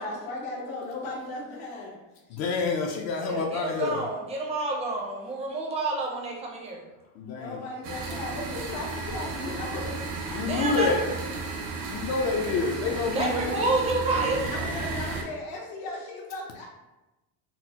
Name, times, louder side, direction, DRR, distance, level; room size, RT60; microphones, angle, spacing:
voice 1, 0.0-2.0 7.3-10.4 14.5-16.7, left 2 dB, 75° left, -4 dB, 1.0 m, -37 dB
voice 2, 2.4-4.0 7.1-7.6 10.3-11.1 11.9-13.7, left 4 dB, 45° left, 1 dB, 0.4 m, -28 dB
voice 3, 3.2-6.8 10.4-11.0 13.1-14.5, right 2 dB, 15° right, -1 dB, 0.4 m, -29 dB
sound 1, 7.8-15.2, right 3 dB, 60° right, 0.6 m, -34 dB
4.1 x 2.0 x 2.8 m, 1.0 s
cardioid pair, 165°, 38 cm